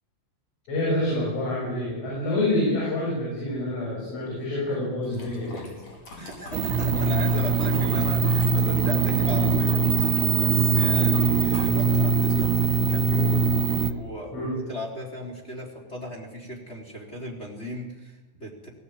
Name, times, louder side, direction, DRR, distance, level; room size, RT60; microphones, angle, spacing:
voice 1, 0.7-5.7 14.3-14.5, left 1 dB, 75° left, -5 dB, 9.7 m, -27 dB
sound 1, 5.0-12.7, left 1 dB, 35° left, 5.8 m, -44 dB
voice 2, 6.2-18.7, equal, 15° left, 0 dB, 3.4 m, -37 dB
sound 2, 6.5-13.9, right 4 dB, 80° right, 4.0 m, -22 dB
21.0 x 17.5 x 8.9 m, 1.1 s
omnidirectional pair, 5.5 m